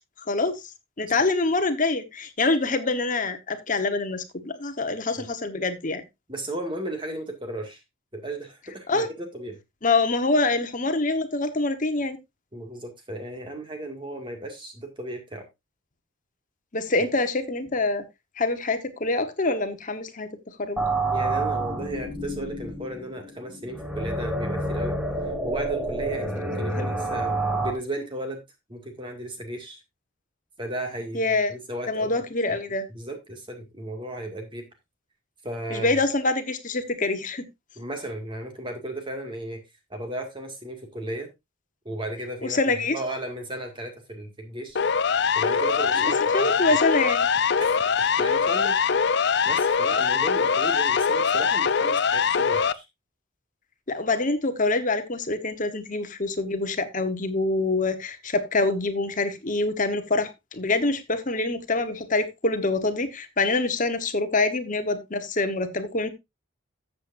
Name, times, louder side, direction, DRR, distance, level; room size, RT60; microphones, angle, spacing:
voice 1, 0.2-0.6 1.0-6.0 8.9-9.1 9.8-12.2 16.7-18.0 18.4-20.3 20.6-20.8 26.8-26.9 31.1-31.5 31.9-32.9 35.7-37.4 42.4-43.0 46.0-47.3 53.9-66.1, left 3 dB, 40° left, 1.2 m, -25 dB
voice 2, 6.3-7.8 8.1-9.6 12.5-15.5 21.1-25.0 25.2-28.4 28.7-29.8 30.6-32.1 32.5-32.6 32.9-34.7 35.4-36.0 37.8-39.6 39.9-41.3 41.8-42.6 42.9-44.8 45.4-46.6 47.6-47.7 48.0-48.8 49.4-52.9, right 1 dB, 25° right, 2.1 m, -35 dB
sound 1, 20.8-27.7, right 2 dB, 5° right, 2.0 m, -28 dB
Siren, 44.8-52.7, left 6 dB, 55° left, 0.5 m, -22 dB
13.5 x 7.8 x 2.6 m
head